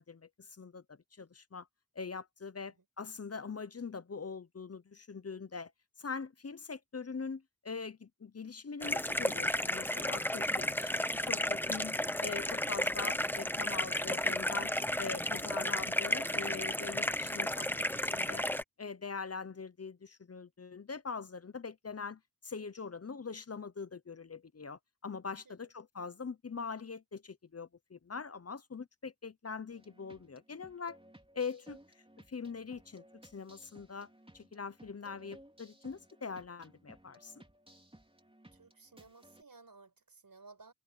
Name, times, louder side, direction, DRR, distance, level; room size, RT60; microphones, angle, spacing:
voice 1, 0.0-1.7 1.9-5.7 6.0-18.4 18.8-31.0 31.3-31.8 32.3-34.1 34.3-37.3, left 5 dB, 45° left, 0.8 m, -43 dB
sound 1, 8.8-18.6, left 1 dB, 5° left, 0.9 m, -33 dB
sound 2, 29.7-39.4, right 1 dB, 15° right, 3.6 m, -59 dB
voice 2, 38.5-40.7, right 3 dB, 70° right, 5.4 m, -57 dB
open air
wide cardioid pair, 80°, 35 cm